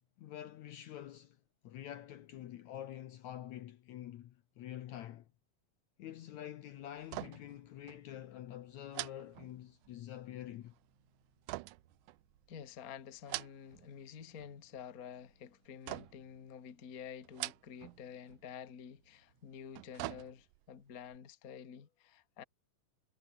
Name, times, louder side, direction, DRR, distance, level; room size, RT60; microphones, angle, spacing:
voice 1, 0.2-5.3 6.0-10.7, left 12 dB, 65° left, 2.1 m, -47 dB
sound 1, 6.5-20.1, right 4 dB, 55° right, 7.5 m, -75 dB
sound 2, 7.0-7.6 7.9-8.0 8.9-10.0 11.5-12.6 13.1-13.9 14.2-14.8 15.9-16.4 17.2-18.0 18.3-18.4 19.5-20.7 21.1-21.2, right 19 dB, 80° right, 1.9 m, -44 dB
voice 2, 12.5-22.4, left 8 dB, 35° left, 1.5 m, -49 dB
omnidirectional pair, 4.0 m